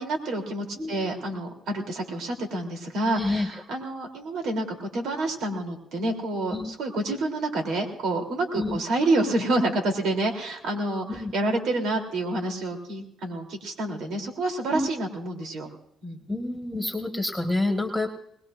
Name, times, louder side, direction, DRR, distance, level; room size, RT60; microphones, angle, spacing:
voice 1, 0.0-15.7 16.0-16.2, right 2 dB, 80° right, 2 dB, 3.3 m, -28 dB
voice 2, 3.1-3.5 6.5-6.7 8.6-8.8 11.1-11.3 14.7-14.9 16.3-18.1, left 2 dB, 5° left, 3 dB, 1.6 m, -28 dB
21.0 x 20.0 x 2.6 m, 0.74 s
cardioid pair, 90°, 0 cm